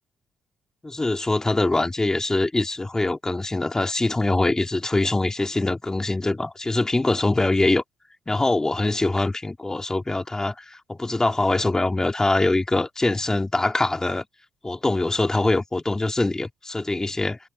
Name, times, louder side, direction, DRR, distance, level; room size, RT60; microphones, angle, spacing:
voice 1, 0.8-7.8 8.3-14.2 14.6-17.4, left 2 dB, 20° left, 3.0 m, -23 dB
supercardioid pair, 60°, 3 cm